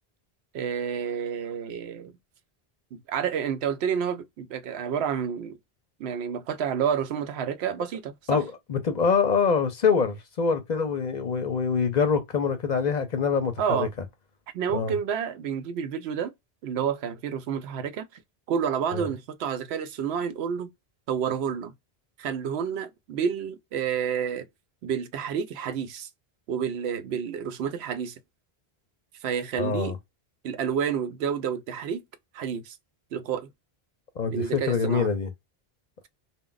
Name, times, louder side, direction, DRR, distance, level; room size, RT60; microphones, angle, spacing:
voice 1, 0.5-2.1 3.1-5.6 6.0-8.4 13.6-13.9 14.5-16.3 16.6-18.1 18.5-20.7 21.1-21.7 22.2-24.4 24.8-26.1 26.5-28.1 29.2-30.0 30.4-32.0 32.3-32.8 33.1-33.5 34.3-35.1, right 7 dB, 90° right, 0.8 m, -29 dB
voice 2, 8.7-13.9 14.7-15.0 18.9-19.1 29.6-30.0 34.2-35.3, left 5 dB, 55° left, 0.6 m, -25 dB
2.2 x 2.0 x 3.7 m
omnidirectional pair, 1.0 m